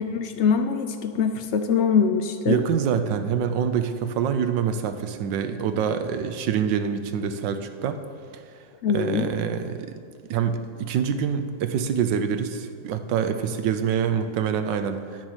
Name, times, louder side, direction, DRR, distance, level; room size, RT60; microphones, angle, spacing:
voice 1, 0.0-2.6 8.8-9.3, left 6 dB, 80° left, 7 dB, 0.6 m, -23 dB
voice 2, 2.5-8.0 8.3-8.4 8.9-9.9 10.3-15.3, right 7 dB, 80° right, 9 dB, 1.4 m, -26 dB
10.0 x 6.5 x 9.0 m, 2.3 s
omnidirectional pair, 2.0 m